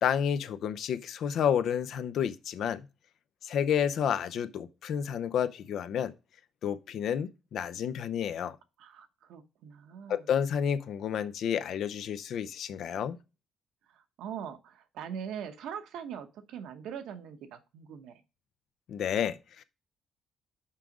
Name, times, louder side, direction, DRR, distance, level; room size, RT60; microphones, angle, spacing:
voice 1, 0.0-2.8 3.4-6.1 6.6-8.6 10.1-13.2 18.9-19.6, left 8 dB, 70° left, 0.6 m, -30 dB
voice 2, 8.8-10.3 13.9-18.2, right 8 dB, 85° right, 1.0 m, -42 dB
5.7 x 4.8 x 5.1 m
cardioid pair, 90°, 0 cm